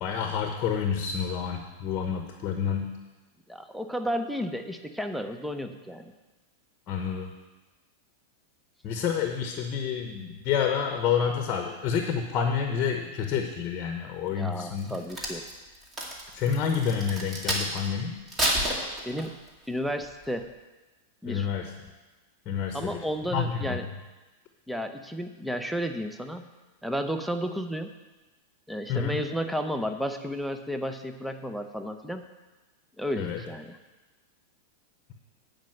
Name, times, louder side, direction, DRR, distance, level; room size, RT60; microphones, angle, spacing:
voice 1, 0.0-3.0 6.9-7.3 8.8-15.0 16.3-18.2 21.2-21.7 22.5-23.9 28.9-29.2 33.2-33.4, left 7 dB, 40° left, 4 dB, 1.0 m, -29 dB
voice 2, 3.5-6.1 14.3-15.5 19.1-19.4 19.7-20.5 21.2-21.5 22.7-23.8 24.7-26.5 26.8-27.9 28.7-32.3 33.0-33.8, equal, ahead, 7 dB, 0.7 m, -32 dB
Crack, 14.8-17.9 18.3-19.5 20.0-20.3, right 1 dB, 20° right, 2.3 m, -30 dB
9.2 x 5.2 x 7.7 m, 1.2 s
hypercardioid pair, 110°, 0 cm